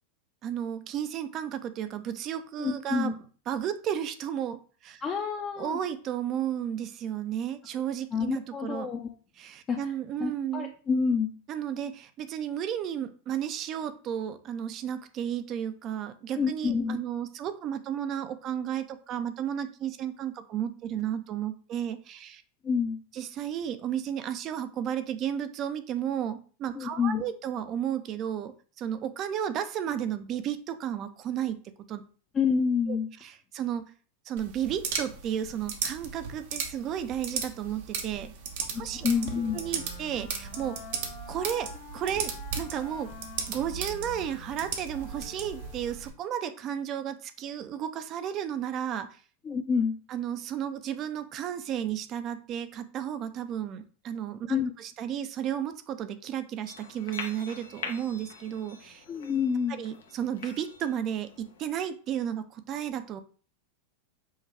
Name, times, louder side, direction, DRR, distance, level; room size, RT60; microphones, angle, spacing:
voice 1, 0.4-3.1 3.5-5.0 5.6-8.9 9.4-10.7 11.5-22.4 23.1-31.6 31.9-32.0 32.9-33.9 34.3-38.3 38.8-39.1 39.5-40.8 41.3-43.1 43.5-49.2 50.1-59.0 59.7-63.2, right 9 dB, 40° right, 11 dB, 0.5 m, -33 dB
voice 2, 2.6-3.1 5.0-5.8 8.1-9.1 9.7-9.8 10.2-11.3 16.4-17.0 22.6-23.0 26.7-27.2 32.3-33.1 38.7-39.6 49.4-50.0 54.5-54.7 59.1-59.8, left 6 dB, 30° left, 1 dB, 0.6 m, -28 dB
sound 1, 34.4-46.1, right 6 dB, 65° right, 0.9 m, -37 dB
Wind instrument woodwind instrument, 38.8-46.2, left 5 dB, 65° left, 1.2 m, -48 dB
sound 2, 56.7-61.7, left 5 dB, 85° left, 0.8 m, -44 dB
5.4 x 2.3 x 3.5 m, 0.40 s
hypercardioid pair, 100°, 0 cm